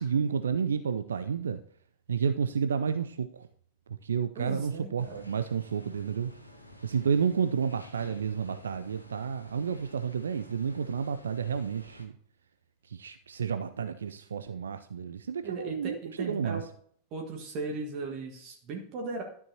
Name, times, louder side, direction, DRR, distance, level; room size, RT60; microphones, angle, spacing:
voice 1, 0.0-1.6 2.1-3.3 4.0-6.3 6.8-12.1 12.9-16.6, right 6 dB, 70° right, 10 dB, 0.4 m, -30 dB
voice 2, 4.3-5.2 15.4-16.6 17.1-19.2, right 3 dB, 40° right, 2 dB, 1.5 m, -37 dB
sound 1, 5.0-12.1, left 1 dB, 90° left, 1.1 m, -52 dB
12.0 x 7.2 x 2.8 m, 0.62 s
figure-of-eight pair, 90°, 0 cm